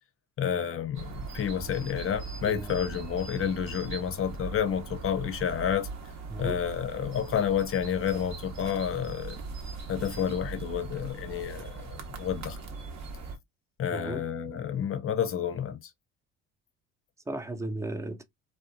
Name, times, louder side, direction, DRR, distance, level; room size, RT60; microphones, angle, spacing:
voice 1, 0.4-5.9 6.4-9.4 9.9-12.6 13.8-15.9, left 8 dB, 40° left, 0.6 m, -30 dB
sound 1, 0.9-13.4, right 4 dB, 50° right, 0.8 m, -40 dB
voice 2, 2.4-2.8 6.3-6.7 13.9-14.3 17.3-18.2, right 2 dB, 10° right, 0.3 m, -35 dB
2.6 x 2.3 x 2.5 m
supercardioid pair, 75°, 34 cm